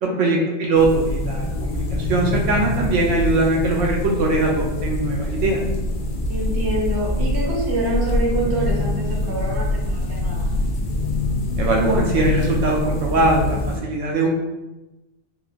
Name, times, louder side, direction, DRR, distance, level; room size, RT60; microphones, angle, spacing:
voice 1, 0.0-5.6 11.6-14.3, right 2 dB, 75° right, 0 dB, 0.9 m, -21 dB
sound 1, 0.7-13.8, left 1 dB, 65° left, 0.5 m, -24 dB
voice 2, 6.3-10.5, right 1 dB, 25° right, -3 dB, 0.5 m, -26 dB
3.7 x 2.5 x 2.4 m, 1.0 s
omnidirectional pair, 1.3 m